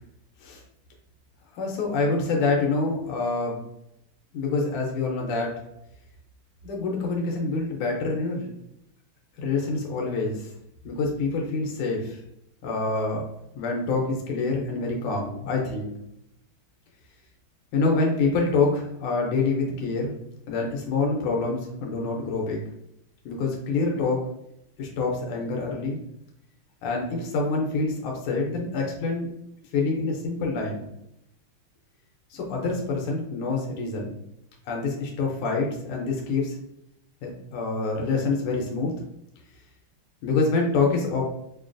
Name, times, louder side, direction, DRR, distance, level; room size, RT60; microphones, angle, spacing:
voice 1, 1.5-3.6 4.3-5.6 6.6-8.5 9.4-10.5 10.9-12.2 12.6-13.3 13.6-15.9 17.7-20.1 20.5-22.6 23.3-24.3 24.8-26.0 26.8-29.3 29.7-30.9 32.3-34.2 34.7-36.6 37.2-38.9 40.2-41.2, left 3 dB, 90° left, 0 dB, 1.6 m, -26 dB
5.5 x 2.2 x 2.5 m, 0.80 s
omnidirectional pair, 2.4 m